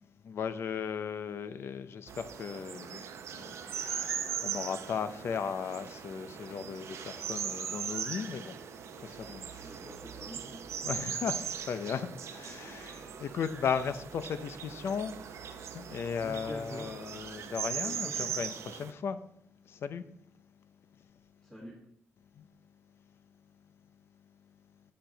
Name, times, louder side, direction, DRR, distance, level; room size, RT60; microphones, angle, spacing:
voice 1, 0.2-3.0 3.3-8.6 9.0-9.8 10.8-19.2 19.7-20.1 22.4-22.5, left 7 dB, 60° left, 0.6 m, -36 dB
sound 1, 2.1-18.9, right 8 dB, 80° right, 0.6 m, -39 dB
Bird, 3.7-4.9 6.9-9.0 12.4-14.3 16.3-18.2, right 5 dB, 35° right, 0.6 m, -53 dB
voice 2, 9.6-10.7 16.2-17.0 17.8-18.4 21.4-21.9, equal, 5° left, 1.7 m, -45 dB
7.6 x 6.8 x 3.9 m
wide cardioid pair, 165°, 5 cm